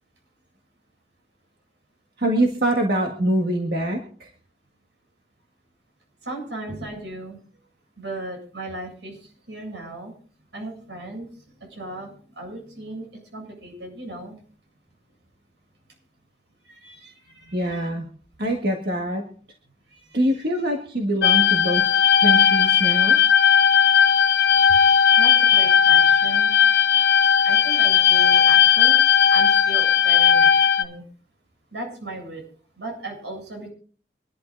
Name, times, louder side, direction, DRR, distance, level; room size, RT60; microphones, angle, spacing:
voice 1, 2.2-4.3 17.5-18.1 18.4-19.3 20.1-21.9 22.2-23.2, right 1 dB, 60° right, 2 dB, 1.7 m, -24 dB
voice 2, 6.2-7.4 8.0-10.1 10.5-14.4 16.6-17.9 19.9-20.4 24.8-26.5 27.4-31.0 31.7-32.4 32.8-33.7, right 1 dB, 85° right, 2 dB, 7.9 m, -37 dB
sound 1, 21.2-30.8, left 8 dB, 70° left, 1.1 m, -17 dB
25.5 x 12.0 x 2.6 m, 0.43 s
head